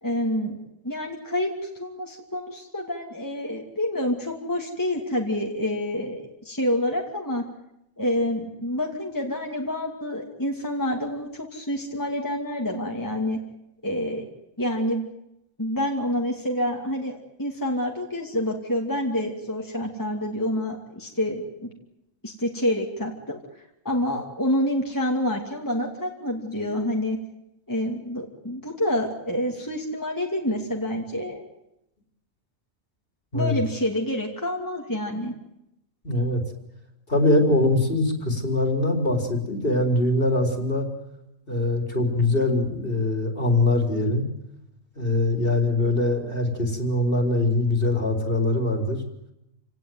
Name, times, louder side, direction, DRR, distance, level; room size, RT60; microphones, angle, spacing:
voice 1, 0.0-7.4 8.0-13.4 13.8-14.2 14.6-15.1 15.6-21.7 22.2-27.2 27.7-31.4 33.3-35.4, left 1 dB, 15° left, 0 dB, 2.7 m, -28 dB
voice 2, 36.0-36.4 37.1-40.9 41.5-44.3 45.0-49.0, left 2 dB, 40° left, 4 dB, 4.5 m, -22 dB
28.5 x 18.0 x 9.5 m, 0.85 s
omnidirectional pair, 1.4 m